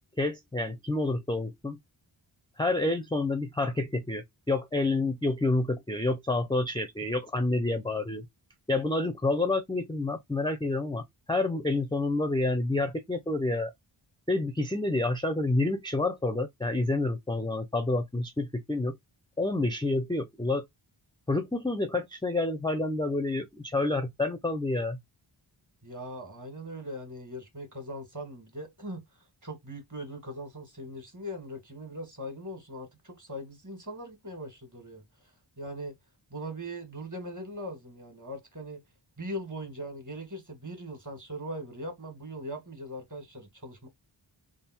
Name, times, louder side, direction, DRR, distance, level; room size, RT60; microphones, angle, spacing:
voice 1, 0.2-1.8 2.6-8.3 8.7-13.7 14.3-19.0 19.4-20.6 21.3-25.0, left 2 dB, 10° left, 0.4 m, -28 dB
voice 2, 25.8-29.0 29.4-35.0 35.6-35.9 36.3-38.8 39.2-43.9, equal, 35° right, 1.8 m, -40 dB
3.6 x 2.5 x 4.2 m
wide cardioid pair, 60°, 49 cm